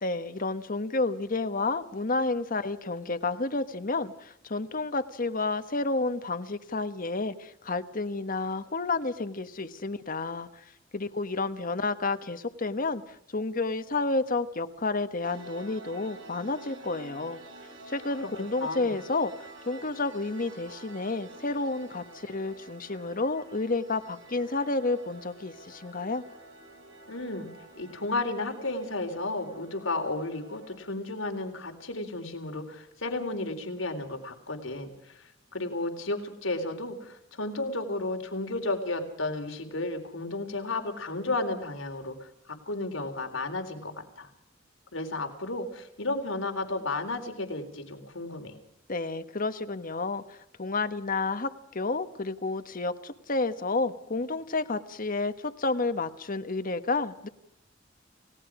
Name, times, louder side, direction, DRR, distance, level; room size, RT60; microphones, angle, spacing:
voice 1, 0.0-10.6 10.9-17.4 17.9-26.2 48.9-57.3, left 3 dB, 45° left, 10 dB, 1.3 m, -30 dB
sound 1, 15.2-30.8, right 2 dB, 75° right, 4.9 m, -49 dB
voice 2, 18.6-18.9 27.1-27.5 27.8-44.3 44.9-48.6, left 2 dB, 85° left, 5 dB, 3.9 m, -33 dB
29.5 x 18.5 x 4.9 m, 0.73 s
head